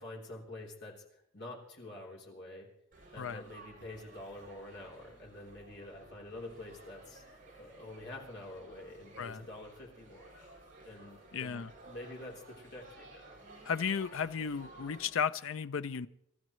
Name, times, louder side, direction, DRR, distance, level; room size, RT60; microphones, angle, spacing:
voice 1, 0.0-2.7 3.1-7.2 7.6-10.6 10.8-13.4, left 1 dB, 55° left, -1 dB, 3.6 m, -47 dB
Laughter / Chatter / Crowd, 2.9-15.1, right 2 dB, 40° right, 7.6 m, -55 dB
voice 2, 11.3-11.7 13.7-16.1, left 6 dB, 70° left, 14 dB, 0.5 m, -34 dB
27.0 x 13.5 x 3.1 m, 0.76 s
head